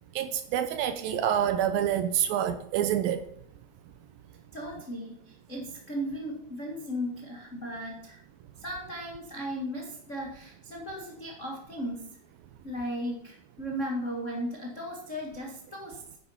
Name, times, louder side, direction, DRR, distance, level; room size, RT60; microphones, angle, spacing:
voice 1, 0.2-3.2, right 10 dB, 80° right, 2.2 m, -27 dB
voice 2, 4.5-8.2 8.6-12.1 12.6-16.0, equal, 80° left, 0.6 m, -36 dB
10.0 x 9.1 x 5.6 m
omnidirectional pair, 4.7 m